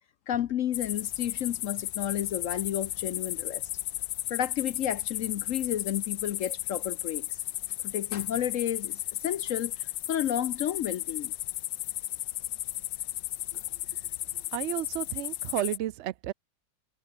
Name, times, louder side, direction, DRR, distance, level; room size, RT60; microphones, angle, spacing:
voice 1, 0.3-3.6 4.3-7.3 7.8-11.3, left 10 dB, 65° left, 0.8 m, -31 dB
sound 1, 0.7-15.8, left 15 dB, 85° left, 1.4 m, -34 dB
voice 2, 14.5-16.3, right 13 dB, 90° right, 0.6 m, -32 dB
omnidirectional pair, 1.9 m